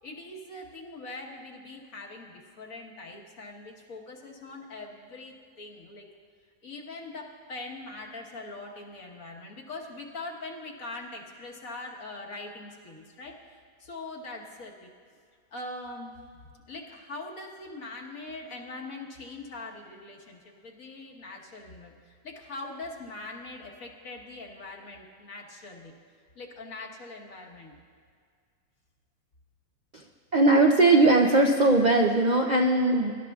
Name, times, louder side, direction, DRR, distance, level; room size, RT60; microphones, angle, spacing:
voice 1, 0.0-6.1 6.6-13.4 13.8-14.9 15.5-16.1 16.7-25.9 26.3-27.7, left 2 dB, 65° left, -1 dB, 1.7 m, -42 dB
voice 2, 30.3-33.2, right 2 dB, 70° right, 2 dB, 0.4 m, -20 dB
23.0 x 12.0 x 2.4 m, 2.1 s
omnidirectional pair, 1.6 m